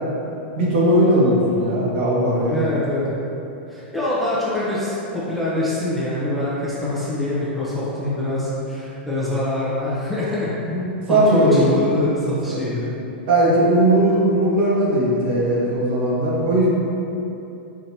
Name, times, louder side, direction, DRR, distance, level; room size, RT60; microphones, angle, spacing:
voice 1, 0.6-2.6 11.1-11.8 13.3-16.7, right 1 dB, 60° right, -6 dB, 1.2 m, -18 dB
voice 2, 2.5-3.1 3.7-12.8, left 1 dB, ahead, -10 dB, 0.7 m, -24 dB
4.9 x 2.8 x 2.8 m, 2.9 s
hypercardioid pair, 135°, 6 cm